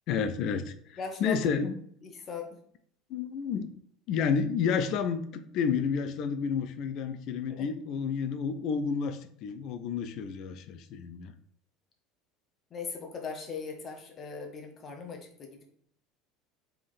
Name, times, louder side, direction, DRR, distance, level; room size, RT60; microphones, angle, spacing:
voice 1, 0.1-1.8 3.1-3.7 4.1-11.3, left 6 dB, 55° left, 10 dB, 0.4 m, -30 dB
voice 2, 1.0-1.7 2.0-2.6 7.5-7.7 12.7-15.7, left 5 dB, 35° left, 3 dB, 0.7 m, -39 dB
3.6 x 3.4 x 2.5 m, 0.63 s
hypercardioid pair, 70°, 0 cm